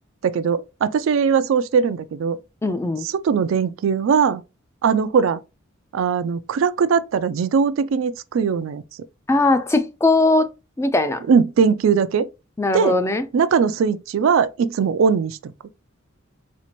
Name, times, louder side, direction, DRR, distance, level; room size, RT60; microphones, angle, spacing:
voice 1, 0.2-2.4 3.0-4.4 4.8-5.4 5.9-8.8 11.3-12.3 12.7-13.0 13.3-15.5, right 6 dB, 70° right, 0.3 m, -20 dB
voice 2, 2.6-3.1 9.3-10.5 10.8-11.2 12.6-13.2, left 2 dB, 15° left, 0.3 m, -19 dB
4.3 x 2.5 x 2.9 m
head